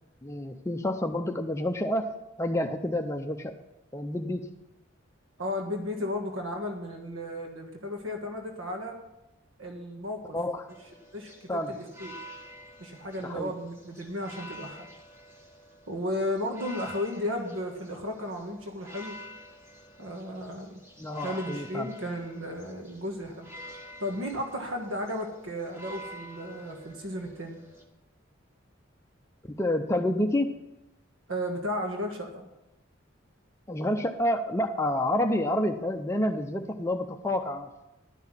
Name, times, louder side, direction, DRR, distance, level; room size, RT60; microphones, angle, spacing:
voice 1, 0.2-2.1 2.4-3.5 3.9-4.5 10.3-10.7 11.5-11.8 13.2-13.5 21.0-21.9 29.6-30.5 33.7-37.7, left 1 dB, 15° left, 5 dB, 0.5 m, -28 dB
voice 2, 5.4-9.0 9.6-10.4 11.1-12.2 12.8-14.9 15.9-19.2 20.0-20.8 21.2-23.5 24.0-27.6 31.3-32.4, left 1 dB, 70° right, 3 dB, 1.4 m, -34 dB
sound 1, 10.7-27.8, equal, 15° right, 1.6 m, -48 dB
11.5 x 5.9 x 7.4 m, 0.93 s
head